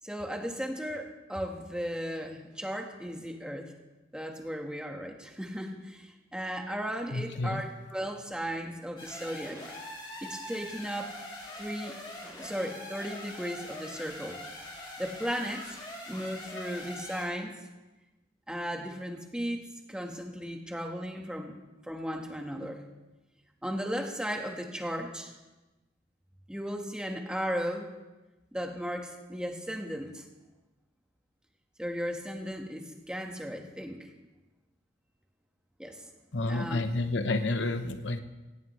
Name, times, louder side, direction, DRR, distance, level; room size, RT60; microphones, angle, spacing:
voice 1, 0.0-3.7 4.1-9.6 10.2-11.2 11.6-12.0 12.4-14.4 15.0-15.8 16.1-17.5 18.5-22.9 23.6-25.3 26.5-27.9 28.5-30.3 31.8-34.1 35.8-36.1 36.5-36.8, equal, 5° right, 2 dB, 1.3 m, -36 dB
voice 2, 7.1-7.6 36.3-38.2, left 2 dB, 75° left, 9 dB, 0.9 m, -30 dB
sound 1, 9.0-17.2, left 1 dB, 25° left, 3.0 m, -43 dB
17.5 x 17.0 x 3.2 m, 1.1 s
head